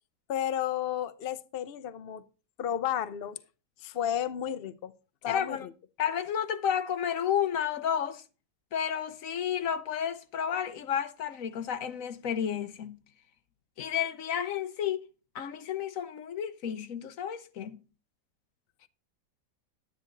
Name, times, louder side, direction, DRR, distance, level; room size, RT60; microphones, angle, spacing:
voice 1, 0.3-2.2 2.6-3.4 3.8-4.9 5.2-5.7, left 10 dB, 80° left, 0.5 m, -32 dB
voice 2, 5.3-5.7 6.0-8.2 8.7-13.0 13.8-15.1 15.3-17.8, left 8 dB, 55° left, 1.1 m, -31 dB
11.0 x 10.5 x 3.9 m
omnidirectional pair, 1.9 m